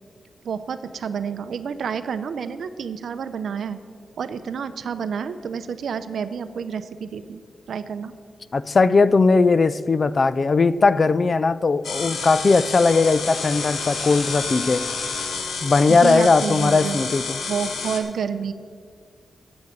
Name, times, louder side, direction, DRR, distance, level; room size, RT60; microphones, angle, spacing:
voice 1, 0.4-3.8 4.2-7.4 7.7-8.1 15.9-18.5, right 6 dB, 70° right, 0.6 m, -29 dB
voice 2, 8.5-14.8 15.6-17.4, left 4 dB, 35° left, 0.3 m, -18 dB
sound 1, 11.8-18.0, left 4 dB, 80° left, 1.5 m, -29 dB
9.4 x 8.0 x 8.7 m
wide cardioid pair, 140°, 0 cm